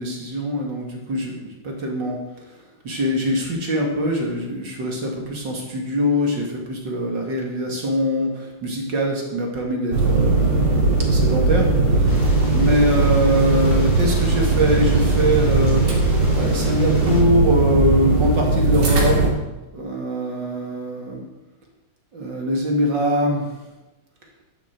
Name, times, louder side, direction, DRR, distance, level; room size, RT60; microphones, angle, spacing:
voice 1, 0.0-2.6 2.8-12.2 12.5-16.0 16.3-19.2 19.7-21.2 22.1-23.5, equal, 40° right, 0 dB, 2.7 m, -23 dB
sound 1, 9.9-19.3, right 3 dB, 55° right, 3.9 m, -19 dB
sound 2, 12.1-17.2, left 1 dB, 45° left, 3.8 m, -35 dB
13.5 x 10.5 x 4.6 m, 1.0 s
omnidirectional pair, 3.3 m